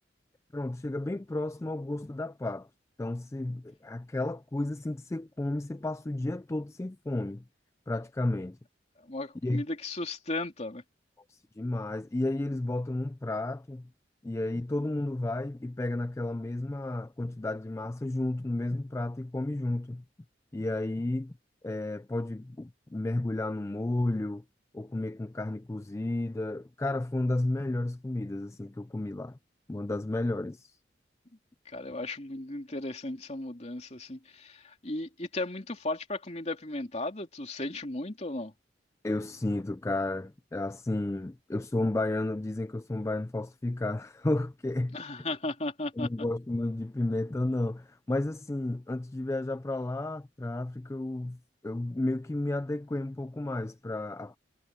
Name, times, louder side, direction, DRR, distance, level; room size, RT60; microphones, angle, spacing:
voice 1, 0.5-2.7 3.0-7.4 7.9-8.6 9.4-9.6 11.3-13.9 14.2-20.0 20.5-21.3 21.6-24.4 24.7-29.4 29.7-30.8 39.0-45.0 46.0-51.4 51.6-54.4, left 2 dB, 15° left, 0.3 m, -32 dB
voice 2, 9.0-10.8 31.6-38.5 44.9-46.1, left 2 dB, 35° left, 3.0 m, -35 dB
head